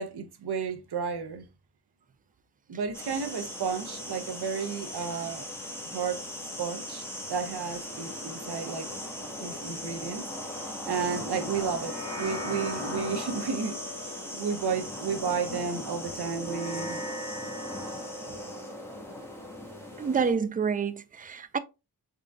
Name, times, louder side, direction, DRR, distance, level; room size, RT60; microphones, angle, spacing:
voice 1, 0.0-1.5 2.7-5.5 5.8-6.2 6.6-8.9 9.4-10.3 10.9-13.8 14.0-17.1, right 6 dB, 70° right, 0.7 m, -32 dB
sound 1, 2.9-20.3, left 1 dB, 5° left, 1.3 m, -38 dB
sound 2, 11.6-20.3, left 1 dB, 45° left, 1.9 m, -41 dB
voice 2, 20.0-21.6, right 6 dB, 20° right, 0.3 m, -28 dB
3.7 x 3.6 x 2.2 m
wide cardioid pair, 55°, 41 cm